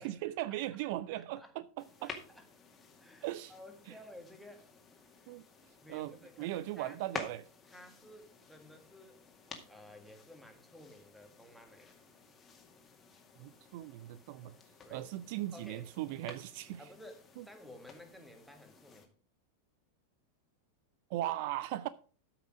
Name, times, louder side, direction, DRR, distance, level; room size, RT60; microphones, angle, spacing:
voice 1, 0.0-2.1 3.2-3.5 3.9-4.0 5.3-5.5 5.9-7.5 13.4-14.5 14.9-16.8 17.4-17.5 21.1-21.9, right 14 dB, 50° right, 0.4 m, -38 dB
voice 2, 1.1-1.5 2.0-2.4 3.0-4.7 5.1-5.3 5.8-7.0 7.7-9.2 9.7-12.0 14.8-15.0 15.5-15.9 16.8-19.1, left 1 dB, ahead, 1.8 m, -54 dB
sound 1, 1.8-19.1, left 5 dB, 20° left, 2.0 m, -52 dB
13.0 x 5.8 x 4.9 m
figure-of-eight pair, 90°, 0 cm